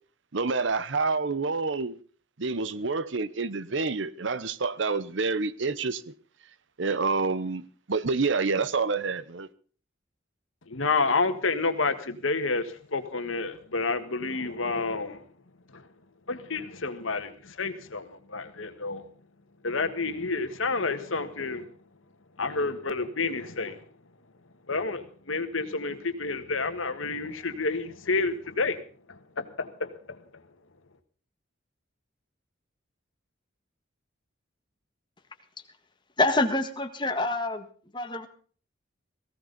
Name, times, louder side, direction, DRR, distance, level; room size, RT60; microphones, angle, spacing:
voice 1, 0.3-2.0 2.4-6.1 6.8-9.5, right 4 dB, 70° right, 0.8 m, -28 dB
voice 2, 10.7-15.2 15.7-15.8 16.3-19.0 19.6-21.7 22.4-23.8 24.7-28.8 29.4-29.9, left 3 dB, 85° left, 1.6 m, -29 dB
voice 3, 36.2-37.7 37.9-38.3, left 2 dB, 25° left, 1.6 m, -26 dB
18.5 x 16.0 x 4.0 m
head